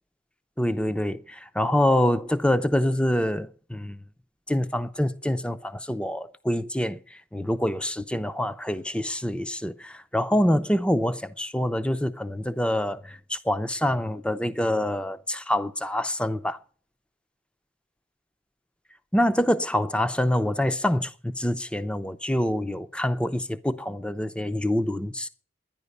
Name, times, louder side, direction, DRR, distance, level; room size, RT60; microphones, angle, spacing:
voice 1, 0.6-4.0 4.5-16.6 19.1-25.3, left 1 dB, 5° left, 0.6 m, -26 dB
11.0 x 10.5 x 6.6 m
head